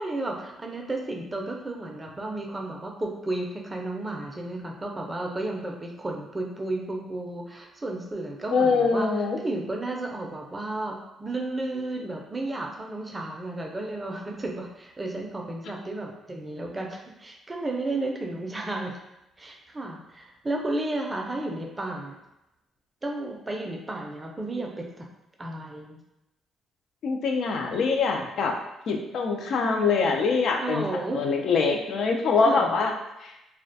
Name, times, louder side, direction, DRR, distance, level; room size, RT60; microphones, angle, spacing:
voice 1, 0.0-18.9 19.4-22.2 23.0-25.1 25.4-26.0 30.6-31.3 32.4-32.8, right 2 dB, 20° right, 1 dB, 0.4 m, -33 dB
voice 2, 8.5-9.4 27.0-28.5 28.9-30.9 31.1-32.9 33.2-33.3, left 4 dB, 65° left, 2 dB, 0.3 m, -24 dB
2.3 x 2.1 x 2.6 m, 0.89 s
cardioid pair, 90°, 0 cm